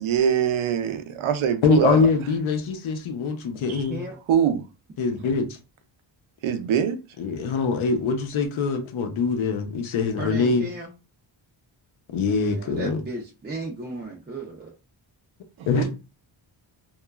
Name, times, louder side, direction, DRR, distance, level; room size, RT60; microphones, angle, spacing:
voice 1, 0.0-2.0 3.7-3.8 4.3-4.6 6.4-7.0 15.7-15.9, right 8 dB, 80° right, 0.6 m, -23 dB
voice 2, 1.6-4.1 5.0-5.5 7.2-10.7 12.1-13.0 15.7-15.9, left 4 dB, 75° left, 0.7 m, -23 dB
voice 3, 10.2-10.9 12.3-14.7, right 2 dB, 25° right, 0.4 m, -35 dB
2.9 x 2.3 x 2.3 m
wide cardioid pair, 150°, 48 cm